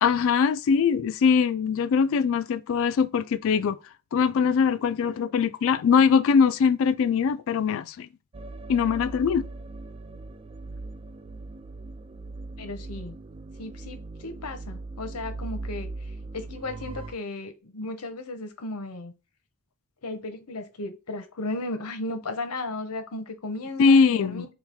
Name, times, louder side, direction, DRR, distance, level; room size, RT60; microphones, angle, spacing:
voice 1, 0.0-3.8 4.1-8.1 8.7-9.5 23.8-24.5, left 6 dB, 60° left, 0.3 m, -22 dB
sound 1, 8.3-17.1, right 2 dB, 25° right, 0.3 m, -39 dB
voice 2, 12.6-13.2 13.6-15.9 16.3-19.1 20.0-24.4, left 2 dB, 90° left, 0.8 m, -35 dB
4.4 x 2.3 x 3.5 m
head